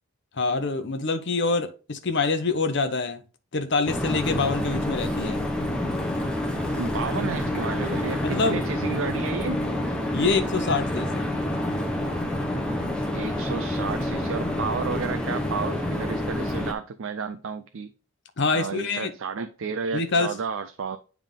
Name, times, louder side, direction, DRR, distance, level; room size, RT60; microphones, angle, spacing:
voice 1, 0.3-3.2 3.5-5.4 8.2-8.6 10.1-11.2 18.4-19.1 19.9-20.3, left 3 dB, 50° left, 0.8 m, -25 dB
sound 1, 3.9-16.7, left 1 dB, 5° left, 0.8 m, -28 dB
voice 2, 6.8-9.6 13.1-17.9 18.5-21.0, right 5 dB, 60° right, 0.4 m, -32 dB
9.1 x 3.5 x 3.7 m
head